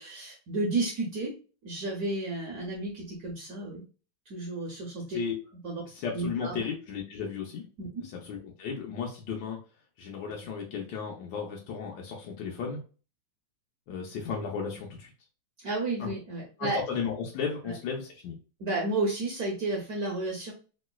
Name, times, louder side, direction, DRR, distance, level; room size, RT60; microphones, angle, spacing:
voice 1, 0.0-1.3 1.6-3.8 4.3-5.2 5.6-5.8 6.1-6.6 7.8-8.0 15.6-16.8 17.6-17.7 18.6-20.5, right 2 dB, 65° right, -1 dB, 1.1 m, -32 dB
voice 2, 5.9-7.6 8.0-9.6 10.0-12.8 13.9-15.1 16.0-16.1 16.6-18.4, left 6 dB, 85° left, -1 dB, 1.4 m, -34 dB
3.1 x 3.0 x 2.2 m, 0.35 s
omnidirectional pair, 2.0 m